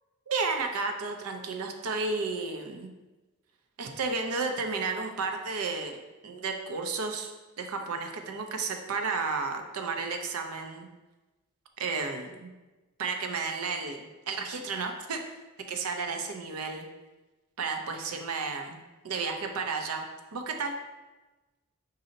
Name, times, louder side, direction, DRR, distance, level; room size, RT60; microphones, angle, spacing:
voice 1, 0.3-2.9 3.8-7.3 7.6-10.9 11.8-12.5 13.0-15.2 15.7-16.9 17.6-18.8 19.0-20.1 20.3-20.8, right 4 dB, 80° right, 5 dB, 0.5 m, -32 dB
5.1 x 2.7 x 3.8 m, 1.1 s
head